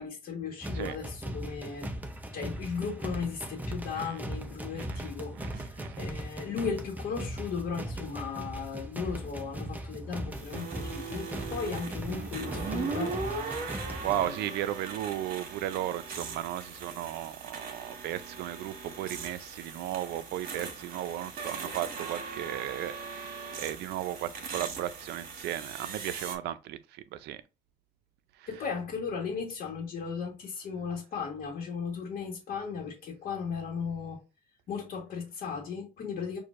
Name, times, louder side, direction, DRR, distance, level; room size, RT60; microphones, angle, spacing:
voice 1, 0.0-1.9 2.3-13.2 14.0-14.5 28.5-34.2 34.7-36.4, left 6 dB, 65° left, 1.4 m, -36 dB
sound 1, 0.6-14.3, right 1 dB, 10° right, 0.7 m, -39 dB
voice 2, 4.7-5.1 5.4-6.1 13.5-27.4 28.4-28.5, right 12 dB, 80° right, 0.5 m, -35 dB
sound 2, 10.3-26.4, right 4 dB, 60° right, 1.5 m, -39 dB
6.3 x 2.6 x 2.5 m
cardioid pair, 110°, 17 cm